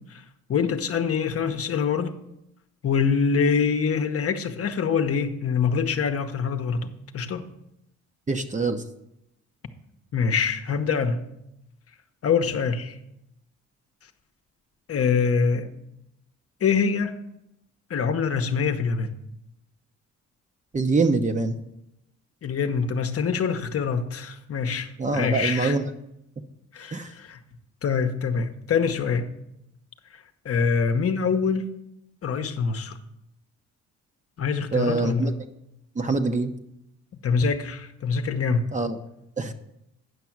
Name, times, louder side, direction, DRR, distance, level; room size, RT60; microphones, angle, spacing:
voice 1, 0.5-2.1 2.8-7.5 10.1-11.3 12.2-13.0 14.9-15.7 16.6-17.2 17.9-19.1 22.4-25.8 26.7-27.4 27.8-29.3 30.1-31.7 32.2-33.0 34.4-35.3 37.2-38.7, left 5 dB, 50° left, 0.9 m, -25 dB
voice 2, 8.3-8.8 20.7-21.6 25.0-25.8 26.9-27.1 34.7-35.3 36.0-36.5 38.7-39.0 39.4-39.5, right 3 dB, 25° right, 0.8 m, -24 dB
9.5 x 6.0 x 6.0 m
cardioid pair, 90°, 30 cm